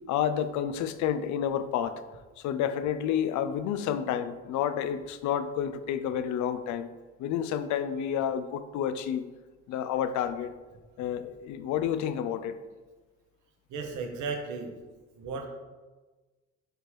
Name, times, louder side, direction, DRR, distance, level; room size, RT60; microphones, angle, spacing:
voice 1, 0.1-2.0 2.4-6.9 7.2-9.2 9.7-10.5 11.0-12.6, left 9 dB, 60° left, 12 dB, 0.6 m, -30 dB
voice 2, 13.7-14.7 15.2-15.5, right 4 dB, 60° right, 4 dB, 1.1 m, -35 dB
6.7 x 4.4 x 3.2 m, 1.3 s
hypercardioid pair, 60°, 33 cm